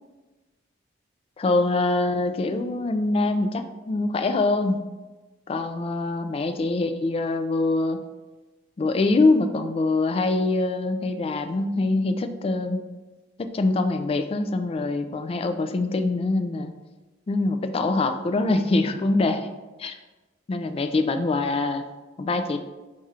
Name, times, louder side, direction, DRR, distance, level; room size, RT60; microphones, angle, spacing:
voice 1, 1.4-4.8 5.5-8.0 8.8-12.8 13.4-16.7 17.3-19.5 19.8-20.0 20.5-21.8 22.2-22.6, left 2 dB, 30° left, 8 dB, 0.3 m, -24 dB
4.2 x 2.4 x 4.8 m, 1.2 s
head